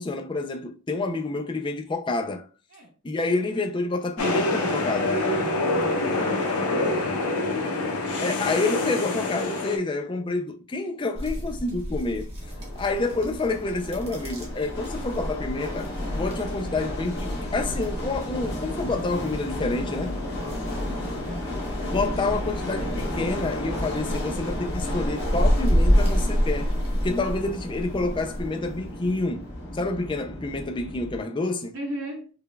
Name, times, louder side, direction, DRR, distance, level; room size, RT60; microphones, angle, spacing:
voice 1, 0.0-2.5 3.0-5.2 8.2-12.3 12.8-20.2 21.9-26.7 27.0-29.5 29.7-31.7, left 3 dB, 20° left, 0.3 m, -28 dB
sound 1, 4.2-9.8, left 2 dB, 85° left, 0.8 m, -25 dB
voice 2, 5.5-7.8 19.5-21.5 27.1-27.4 31.7-32.3, equal, 75° right, 1.4 m, -39 dB
sound 2, 11.2-28.5, equal, 25° right, 0.8 m, -29 dB
sound 3, 12.4-31.2, left 1 dB, 50° left, 1.2 m, -33 dB
4.9 x 2.3 x 2.2 m
head